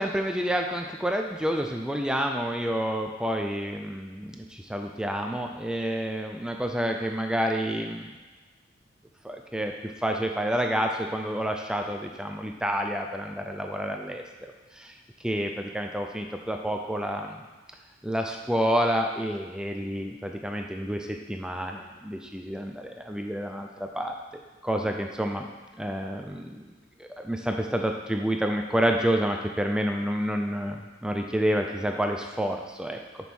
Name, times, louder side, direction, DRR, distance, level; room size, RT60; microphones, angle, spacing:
voice 1, 0.0-8.1 9.2-9.7 10.0-14.9 15.2-17.4 18.0-24.1 24.6-25.5 25.8-26.7 27.0-33.0, equal, 5° right, 3 dB, 0.5 m, -29 dB
7.4 x 6.2 x 5.4 m, 1.2 s
head